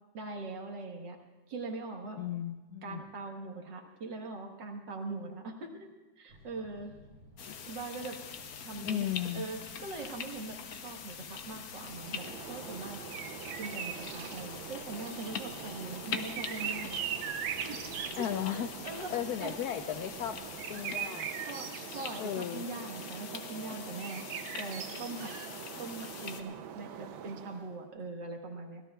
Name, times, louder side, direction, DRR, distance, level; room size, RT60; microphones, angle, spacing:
voice 1, 0.1-1.2 1.5-2.2 2.8-5.9 6.2-6.9 7.7-8.2 8.6-9.1 9.3-10.6 10.8-13.0 13.6-17.0 17.6-17.8 18.2-19.1 19.4-19.6 21.5-21.7 21.9-24.3 24.6-25.3 25.8-28.8, right 3 dB, 60° right, 2 dB, 2.1 m, -41 dB
voice 2, 2.2-3.0 7.5-7.6 8.8-9.5 18.2-18.7 19.1-20.4 20.7-21.3 22.2-22.6, left 10 dB, 85° left, 9 dB, 0.8 m, -35 dB
sound 1, 6.3-21.0, left 1 dB, 40° right, 1.6 m, -57 dB
sound 2, 7.4-26.4, left 7 dB, 60° left, 1.1 m, -44 dB
sound 3, 11.9-27.8, right 9 dB, 80° right, 1.5 m, -41 dB
24.5 x 17.0 x 2.4 m, 1.2 s
omnidirectional pair, 2.2 m